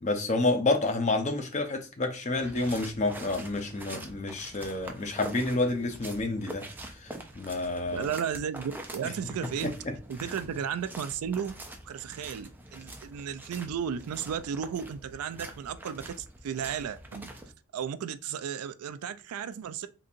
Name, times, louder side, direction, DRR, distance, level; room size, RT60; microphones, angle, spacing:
voice 1, 0.0-8.1 9.4-9.9, left 2 dB, 35° left, 0.6 m, -29 dB
sound 1, 2.4-17.5, right 1 dB, 10° right, 0.4 m, -45 dB
voice 2, 7.9-9.7 10.1-11.6 11.8-17.3 17.7-19.9, right 8 dB, 85° right, 0.3 m, -34 dB
3.8 x 2.7 x 2.4 m
head